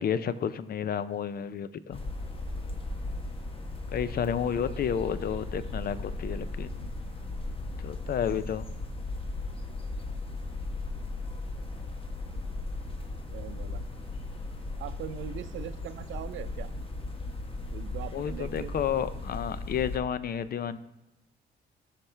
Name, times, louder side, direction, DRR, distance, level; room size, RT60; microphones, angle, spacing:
voice 1, 0.0-2.0 3.9-6.9 7.8-8.7 18.1-20.8, left 8 dB, 50° left, 15 dB, 0.5 m, -31 dB
sound 1, 1.9-20.0, left 2 dB, 25° left, 1.1 m, -37 dB
voice 2, 13.3-13.8 14.8-16.7 17.7-18.8, right 11 dB, 70° right, 13 dB, 0.5 m, -41 dB
13.0 x 5.8 x 3.3 m, 0.93 s
cardioid pair, 90°, 20 cm